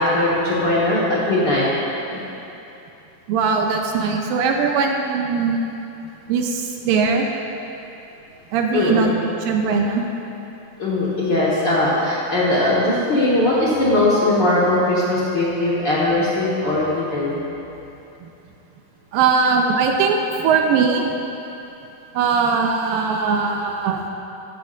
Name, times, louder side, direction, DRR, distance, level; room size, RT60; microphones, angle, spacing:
voice 1, 0.0-1.6 2.1-2.2 8.7-9.1 10.8-17.4, left 1 dB, 55° left, -8 dB, 1.2 m, -19 dB
voice 2, 3.3-5.7 6.3-7.3 8.5-9.1 9.4-10.0 19.1-21.0 22.2-24.0, right 5 dB, 80° right, 2 dB, 2.3 m, -20 dB
15.5 x 12.5 x 2.6 m, 2.9 s
omnidirectional pair, 4.3 m